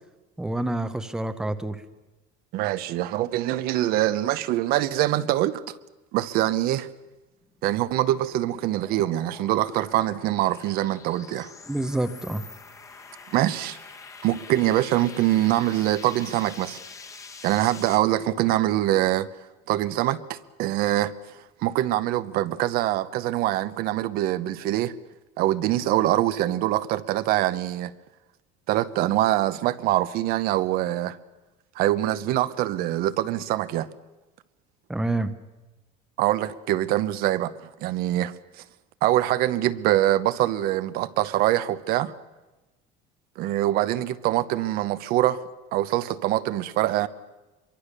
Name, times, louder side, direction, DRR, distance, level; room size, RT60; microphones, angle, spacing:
voice 1, 0.4-1.8 11.7-12.5 34.9-35.3, right 2 dB, 5° right, 0.8 m, -27 dB
voice 2, 2.5-5.6 6.1-6.9 7.6-11.5 13.3-13.8 14.2-16.8 17.4-19.3 19.7-21.1 21.6-24.9 25.4-27.9 28.7-31.2 31.8-33.9 36.2-38.3 39.0-42.1 43.4-45.4 45.7-47.1, right 14 dB, 55° right, 0.9 m, -24 dB
sound 1, 7.4-18.0, left 4 dB, 15° left, 1.5 m, -45 dB
26.0 x 23.5 x 6.7 m
cardioid pair, 170°, 19 cm